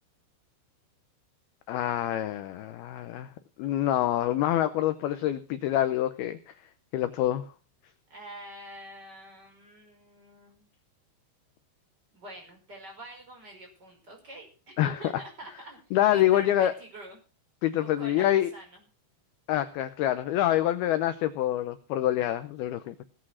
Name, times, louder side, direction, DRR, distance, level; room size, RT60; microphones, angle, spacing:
voice 1, 1.7-3.3 3.6-6.4 6.9-7.5 14.8-15.1 15.9-16.7 17.6-18.5 19.5-23.0, left 12 dB, 85° left, 11 dB, 2.2 m, -26 dB
voice 2, 8.1-10.7 12.1-17.2 17.8-18.8, right 1 dB, 20° right, 1 dB, 5.4 m, -46 dB
19.0 x 8.6 x 6.3 m, 0.37 s
omnidirectional pair, 5.6 m